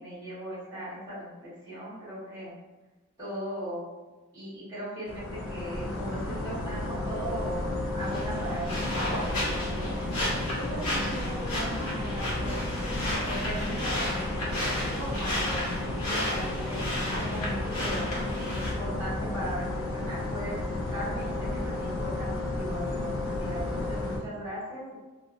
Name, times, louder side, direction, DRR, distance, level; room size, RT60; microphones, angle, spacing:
voice 1, 0.0-2.5 3.2-3.9 4.3-12.6 13.2-18.1 18.4-24.9, right 1 dB, 20° right, -10 dB, 1.4 m, -38 dB
sound 1, 5.1-24.2, left 2 dB, 65° left, 0.5 m, -32 dB
sound 2, 8.0-18.7, left 1 dB, 85° left, 1.3 m, -33 dB
2.8 x 2.6 x 2.5 m, 1.2 s
head